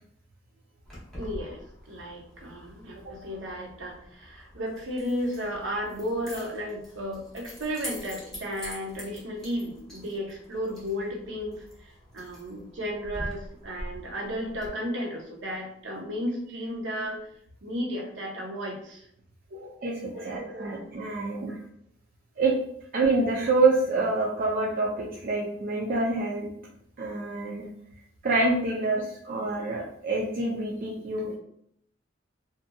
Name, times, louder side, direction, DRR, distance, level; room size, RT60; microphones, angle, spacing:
Keys jangling, 0.8-14.7, equal, ahead, 0.9 m, -45 dB
voice 1, 1.2-1.6 1.9-17.3 17.6-19.1 19.5-19.8 20.1-20.8 21.5-21.6, equal, 85° right, 0 dB, 0.7 m, -34 dB
voice 2, 19.8-21.5 22.4-22.5 22.9-26.5 27.0-27.7 28.2-31.4, right 3 dB, 50° right, -4 dB, 0.4 m, -26 dB
2.7 x 2.6 x 2.2 m, 0.68 s
head